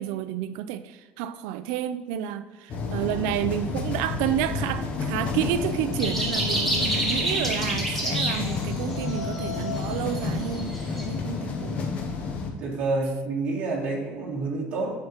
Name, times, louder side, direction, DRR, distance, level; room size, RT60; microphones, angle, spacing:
voice 1, 0.0-11.8, right 11 dB, 85° right, 0.5 m, -30 dB
sound 1, 2.7-12.5, left 4 dB, 35° left, 0.9 m, -30 dB
sound 2, 6.0-11.1, right 1 dB, 5° left, 1.4 m, -29 dB
voice 2, 12.6-14.9, right 3 dB, 35° right, 2.2 m, -28 dB
9.6 x 7.0 x 3.0 m
cardioid pair, 180°, 4 cm